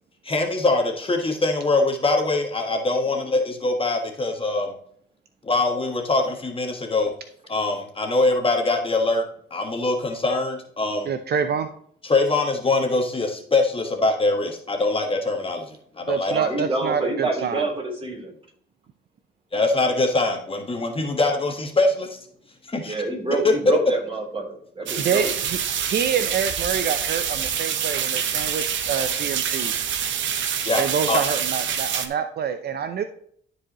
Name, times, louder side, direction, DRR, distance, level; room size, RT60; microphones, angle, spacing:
voice 1, 0.2-4.7 5.4-7.1 7.5-11.1 12.0-16.3 19.5-22.2 22.7-22.9 23.4-23.5 30.6-31.2, left 2 dB, 25° left, 3 dB, 1.5 m, -23 dB
voice 2, 11.0-11.7 16.1-17.6 25.0-25.6 25.9-29.7 30.8-33.0, right 7 dB, 55° right, 9 dB, 0.6 m, -26 dB
voice 3, 16.3-18.3 22.8-25.3, right 2 dB, 25° right, 0 dB, 3.4 m, -27 dB
sound 1, 24.9-32.1, right 8 dB, 75° right, 1.0 m, -26 dB
12.5 x 4.8 x 3.0 m, 0.63 s
cardioid pair, 90°, 20 cm